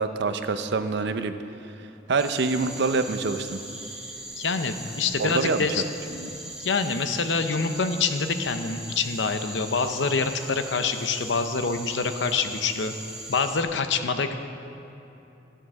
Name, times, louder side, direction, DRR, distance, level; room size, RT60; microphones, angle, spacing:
voice 1, 0.0-1.3 2.1-3.6 5.2-5.7 6.1-6.3, right 4 dB, 65° right, 9 dB, 0.6 m, -26 dB
sound 1, 2.2-13.6, right 1 dB, 5° right, 1.6 m, -40 dB
voice 2, 4.4-5.8 6.6-12.9 13.3-14.3, left 4 dB, 70° left, 8 dB, 0.7 m, -26 dB
13.0 x 7.6 x 6.3 m, 3.0 s
head